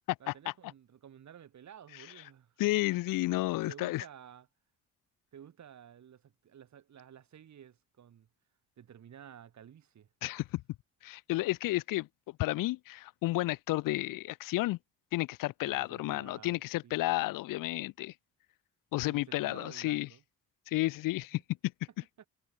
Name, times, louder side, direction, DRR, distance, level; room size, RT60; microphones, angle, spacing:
voice 1, 0.2-2.5 3.7-4.5 5.3-8.3 8.8-10.1 15.6-17.0 19.0-20.2 21.3-21.4 22.2-22.3, right 9 dB, 60° right, 5.8 m, -53 dB
voice 2, 2.6-4.0 10.2-10.6 11.0-14.8 15.1-18.1 18.9-20.1 20.7-21.7, left 18 dB, 85° left, 0.6 m, -32 dB
cardioid pair, 100°, 32 cm